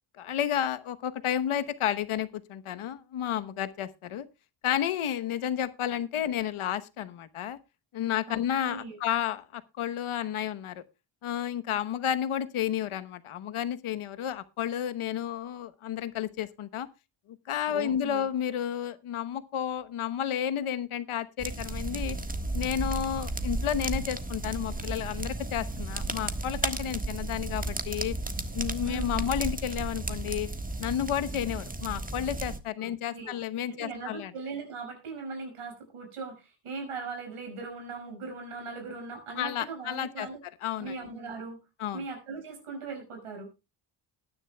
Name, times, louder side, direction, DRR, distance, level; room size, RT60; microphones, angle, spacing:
voice 1, 0.2-4.3 4.6-7.6 7.9-10.8 11.2-16.9 17.3-22.2 22.5-28.2 28.5-30.5 30.8-34.3 39.4-40.3 40.6-41.0 41.8-42.0, left 10 dB, 75° left, 12 dB, 1.1 m, -31 dB
voice 2, 8.3-9.0 17.7-18.2 28.8-29.2 32.8-33.3 33.7-40.4 40.8-41.6 41.9-43.5, right 4 dB, 85° right, 3 dB, 5.9 m, -39 dB
sound 1, 21.4-32.6, right 2 dB, 15° right, 1.5 m, -34 dB
19.5 x 9.9 x 2.3 m, 0.27 s
cardioid pair, 75°, 50 cm